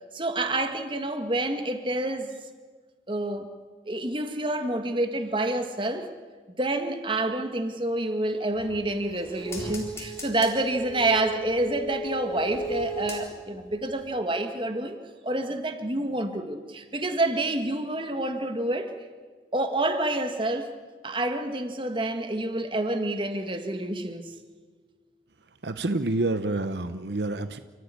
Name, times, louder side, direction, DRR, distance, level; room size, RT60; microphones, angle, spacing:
voice 1, 0.1-2.3 3.1-3.5 3.9-6.1 6.6-15.0 15.2-18.9 19.5-20.7 21.0-24.4, right 2 dB, 30° right, 7 dB, 1.8 m, -28 dB
sound 1, 8.5-13.7 14.0-14.1, equal, 15° left, 3.9 m, -36 dB
voice 2, 25.6-27.6, right 2 dB, 75° right, 11 dB, 0.9 m, -28 dB
29.5 x 14.5 x 9.8 m, 1.5 s
head